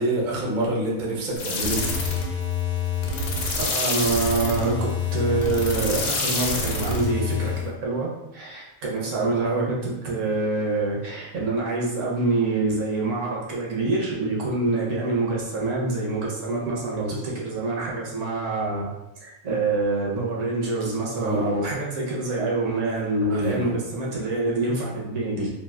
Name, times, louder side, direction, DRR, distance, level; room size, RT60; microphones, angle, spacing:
voice 1, 0.0-1.8 21.2-21.6 23.3-23.7, right 1 dB, 50° right, -4 dB, 0.6 m, -27 dB
sound 1, 1.4-7.7, left 4 dB, 85° left, 1.1 m, -26 dB
voice 2, 3.6-18.9 19.2-25.5, right 3 dB, 65° right, -4 dB, 1.1 m, -26 dB
3.4 x 2.3 x 2.2 m, 0.92 s
omnidirectional pair, 1.5 m